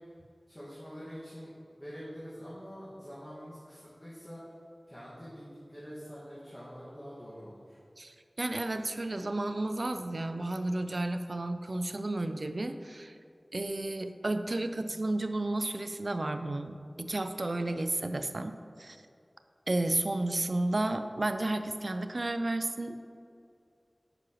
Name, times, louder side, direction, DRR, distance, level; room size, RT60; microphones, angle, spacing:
voice 1, 0.5-4.4 4.9-7.8 14.9-15.0, equal, 20° left, -9 dB, 1.8 m, -46 dB
voice 2, 8.0-13.2 13.5-19.0 19.7-23.0, right 2 dB, 60° right, 8 dB, 0.4 m, -32 dB
8.6 x 6.0 x 3.1 m, 2.4 s
wide cardioid pair, 50°, 0 cm